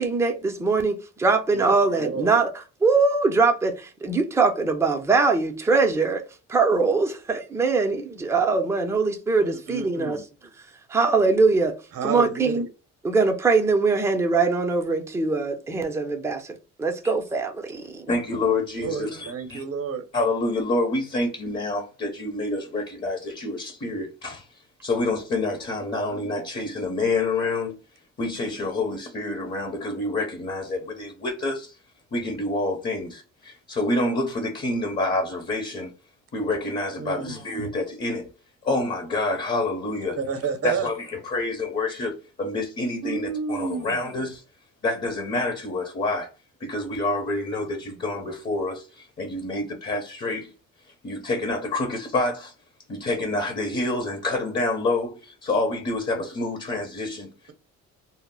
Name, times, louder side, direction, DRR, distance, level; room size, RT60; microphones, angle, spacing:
voice 1, 0.0-2.5 2.8-6.2 6.5-10.2 10.9-11.8 12.0-12.6 13.0-18.1, right 4 dB, 10° right, 0.5 m, -22 dB
voice 2, 1.5-2.4 9.4-10.2 11.9-12.6 18.8-20.0 37.0-37.4 40.2-40.9 43.0-44.0, right 6 dB, 45° right, 0.7 m, -30 dB
voice 3, 18.1-19.6 20.1-24.5 24.8-27.8 28.2-31.8 32.1-35.9 36.3-38.3 38.6-40.2 40.6-44.4 44.8-46.3 46.6-50.5 51.0-52.5 52.9-57.3, left 2 dB, 30° left, 0.8 m, -27 dB
2.0 x 2.0 x 3.6 m
cardioid pair, 80°, 33 cm